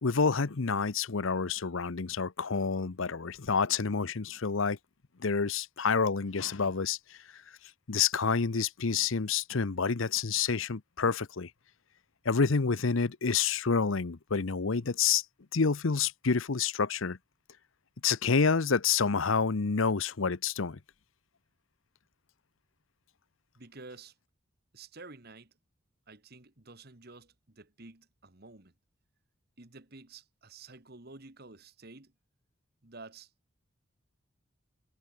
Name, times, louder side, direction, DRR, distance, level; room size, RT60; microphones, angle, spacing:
voice 1, 0.0-4.8 5.2-7.2 7.9-11.5 12.2-15.2 15.5-17.2 18.0-20.8, left 5 dB, 70° left, 0.8 m, -28 dB
voice 2, 23.6-24.1 24.7-25.5 26.1-28.7 29.6-32.1 32.8-33.3, right 3 dB, 50° right, 1.8 m, -50 dB
head